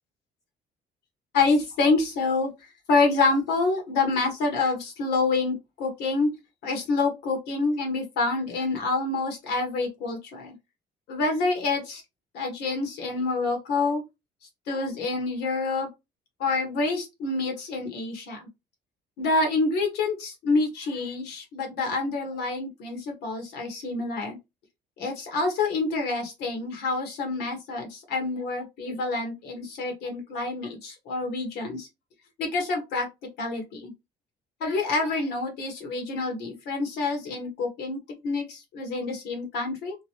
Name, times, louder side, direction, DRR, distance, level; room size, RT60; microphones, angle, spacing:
voice 1, 1.3-2.5 2.9-6.3 6.6-10.5 11.1-12.0 12.3-14.0 14.7-15.9 16.4-18.5 19.2-24.4 25.0-31.9 32.4-33.1 33.4-33.9 34.6-40.0, left 3 dB, 75° left, 1.2 m, -27 dB
2.9 x 2.2 x 2.9 m
cardioid pair, 110°, 17 cm